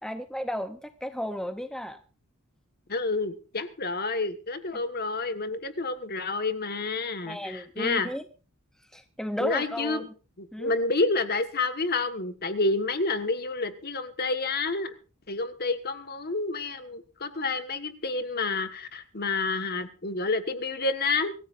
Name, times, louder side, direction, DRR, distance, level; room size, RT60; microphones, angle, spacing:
voice 1, 0.0-2.0 7.2-8.3 8.9-10.1 10.5-10.7, equal, 5° left, 8 dB, 0.7 m, -34 dB
voice 2, 2.9-8.1 9.4-10.0 10.4-14.9 15.3-21.3, left 3 dB, 45° left, 9 dB, 1.4 m, -29 dB
25.0 x 15.0 x 2.6 m, 0.35 s
head